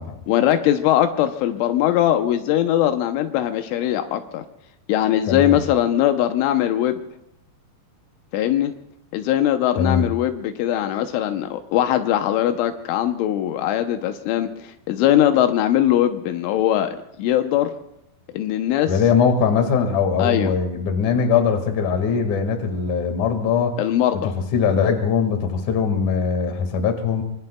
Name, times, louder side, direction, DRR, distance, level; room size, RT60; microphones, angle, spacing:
voice 1, 0.3-4.4 4.9-7.0 8.3-8.7 9.1-17.7 18.3-18.9 20.2-20.5 23.8-24.3, left 11 dB, 80° left, 7 dB, 3.2 m, -20 dB
voice 2, 5.3-5.6 9.8-10.1 18.9-23.8 24.2-27.2, left 6 dB, 55° left, 5 dB, 2.5 m, -21 dB
25.0 x 25.0 x 2.2 m, 0.80 s
omnidirectional pair, 5.6 m